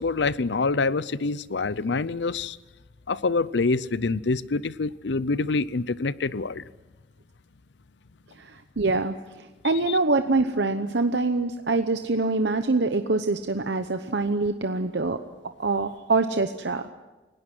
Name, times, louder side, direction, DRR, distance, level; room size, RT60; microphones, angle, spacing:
voice 1, 0.0-2.6 3.1-6.6 9.9-10.0, left 3 dB, 85° left, 18 dB, 0.6 m, -26 dB
voice 2, 8.4-15.2 15.6-16.9, right 3 dB, 85° right, 8 dB, 0.9 m, -25 dB
29.0 x 18.0 x 6.2 m, 1.2 s
head